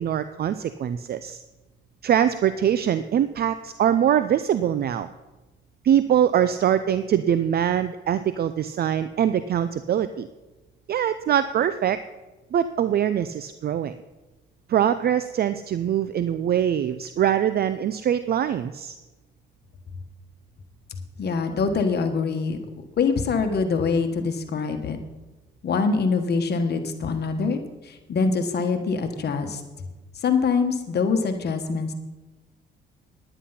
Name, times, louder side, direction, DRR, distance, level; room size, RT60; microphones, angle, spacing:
voice 1, 0.0-1.4 2.0-5.1 5.8-10.3 10.9-12.0 12.5-13.9 14.7-19.0, right 9 dB, 50° right, 12 dB, 0.5 m, -23 dB
voice 2, 21.2-22.6 23.0-25.0 25.6-27.6 27.9-29.6 30.2-31.9, left 4 dB, 55° left, 6 dB, 1.4 m, -24 dB
10.0 x 10.0 x 5.8 m, 1.1 s
cardioid pair, 90°, 20 cm